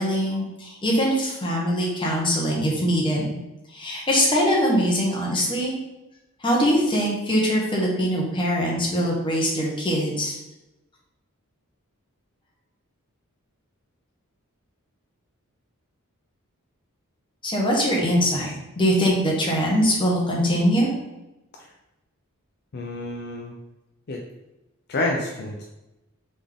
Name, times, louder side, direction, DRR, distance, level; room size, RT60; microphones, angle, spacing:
voice 1, 0.0-3.3 3.7-5.7 6.4-10.3 17.4-20.9, equal, 20° left, -3 dB, 1.0 m, -22 dB
voice 2, 22.7-23.5 24.1-24.2 24.9-25.6, left 2 dB, 45° left, 0 dB, 0.5 m, -28 dB
4.0 x 3.6 x 3.4 m, 0.97 s
head